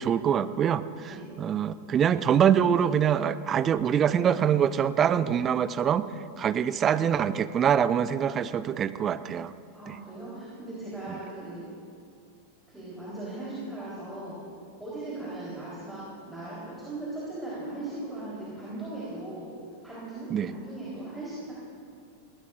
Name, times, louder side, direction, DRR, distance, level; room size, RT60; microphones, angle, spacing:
voice 1, 0.0-6.1 6.4-9.5 9.9-10.0 11.1-11.2 20.3-20.5, right 8 dB, 25° right, 14 dB, 0.5 m, -24 dB
voice 2, 9.7-11.6 12.7-14.4 14.8-19.5 19.8-21.5, right 2 dB, 5° right, -9 dB, 3.9 m, -38 dB
20.0 x 16.5 x 2.6 m, 2.3 s
figure-of-eight pair, 90°, 0 cm